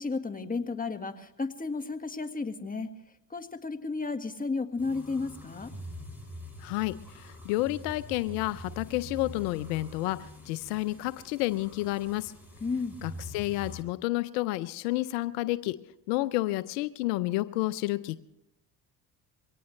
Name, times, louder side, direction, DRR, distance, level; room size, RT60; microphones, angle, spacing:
voice 1, 0.0-2.9 3.3-5.7 12.6-13.0, left 4 dB, 20° left, 8 dB, 1.7 m, -33 dB
sound 1, 4.8-13.8, equal, 5° right, 7.6 m, -45 dB
voice 2, 6.6-12.3 13.0-15.8 16.1-18.2, left 18 dB, 80° left, 15 dB, 0.7 m, -30 dB
23.0 x 18.0 x 3.2 m, 0.85 s
hypercardioid pair, 60°, 46 cm